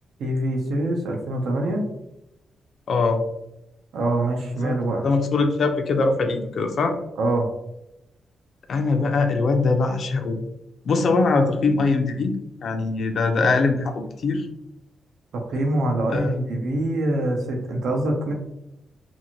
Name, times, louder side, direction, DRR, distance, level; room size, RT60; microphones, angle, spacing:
voice 1, 0.2-1.8 3.9-5.0 7.2-7.5 15.3-18.3, right 1 dB, 85° right, 2 dB, 0.6 m, -24 dB
voice 2, 2.9-3.2 4.6-4.8 5.0-7.0 8.7-10.4 10.8-12.3 12.6-14.5 16.1-16.3, left 3 dB, 55° left, 6 dB, 0.4 m, -22 dB
2.6 x 2.5 x 2.9 m, 0.84 s
wide cardioid pair, 145°, 0 cm